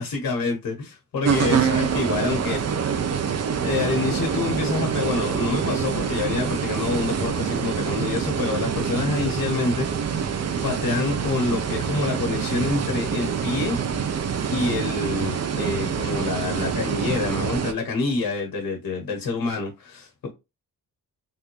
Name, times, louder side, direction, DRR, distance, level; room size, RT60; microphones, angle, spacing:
voice 1, 0.0-3.0 3.6-13.8 14.1-20.3, left 3 dB, 75° left, 1.2 m, -27 dB
sound 1, 1.2-17.7, right 7 dB, 45° right, 0.6 m, -26 dB
3.7 x 2.6 x 2.9 m
wide cardioid pair, 150°, 36 cm